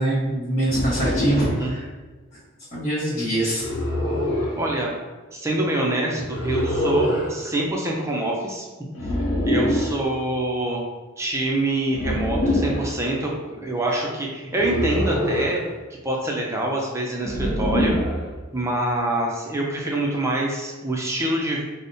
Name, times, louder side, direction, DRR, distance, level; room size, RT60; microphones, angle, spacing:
voice 1, 0.0-1.8 2.7-3.7, right 1 dB, 40° left, -13 dB, 1.1 m, -24 dB
sound 1, 0.6-1.6 3.6-4.5 6.3-7.3 8.9-10.0 11.9-12.9 14.5-15.6 17.2-18.2, left 1 dB, 70° left, 1.1 m, -24 dB
voice 2, 4.6-4.9 5.3-8.6 9.5-10.8 11.2-15.6 16.0-17.9 18.5-21.7, right 1 dB, 15° right, -2 dB, 0.4 m, -25 dB
5.1 x 2.1 x 2.6 m, 1.3 s
head